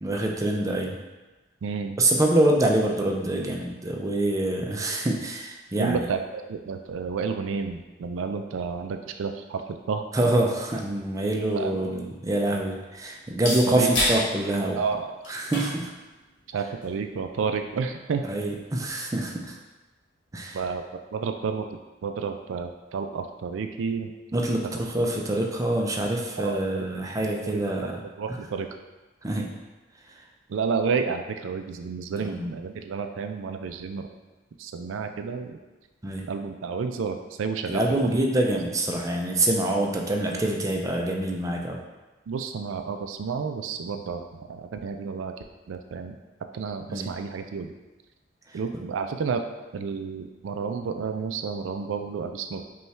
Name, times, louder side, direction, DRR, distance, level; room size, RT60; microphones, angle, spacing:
voice 1, 0.0-1.0 2.0-6.0 10.1-14.8 15.3-15.9 18.3-19.6 20.3-20.6 24.3-28.0 29.2-29.5 30.2-30.3 32.2-32.4 36.0-36.3 37.7-41.8 46.9-47.1, right 1 dB, 15° right, 0 dB, 0.4 m, -25 dB
voice 2, 1.6-1.9 5.8-10.0 11.5-11.9 13.7-13.9 14.7-15.2 16.5-18.2 20.5-21.7 22.0-24.1 26.4-26.9 28.2-28.7 30.5-34.1 34.6-35.6 36.3-38.2 42.3-45.3 45.7-46.2 46.5-47.7 48.5-49.4 49.7-52.6, right 5 dB, 90° right, 6 dB, 0.4 m, -30 dB
sound 1, 11.5-18.9, left 1 dB, 70° left, 1.3 m, -35 dB
5.3 x 2.3 x 3.2 m, 1.1 s
head